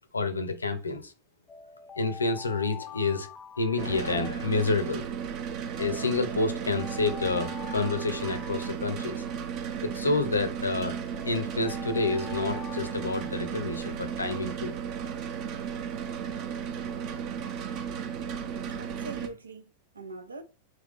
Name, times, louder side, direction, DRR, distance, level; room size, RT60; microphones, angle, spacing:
voice 1, 0.1-1.1 2.0-3.3 3.6-5.0 5.8-9.2 9.8-14.7, left 3 dB, 75° left, 0.6 m, -29 dB
sound 1, 1.5-4.7 5.8-9.6 10.7-13.9, left 8 dB, 20° left, 0.5 m, -46 dB
sound 2, 3.8-19.3, right 7 dB, 40° right, 0.7 m, -35 dB
voice 2, 18.8-20.4, right 3 dB, 75° right, 0.6 m, -42 dB
3.7 x 2.9 x 3.6 m
figure-of-eight pair, 90°, 0 cm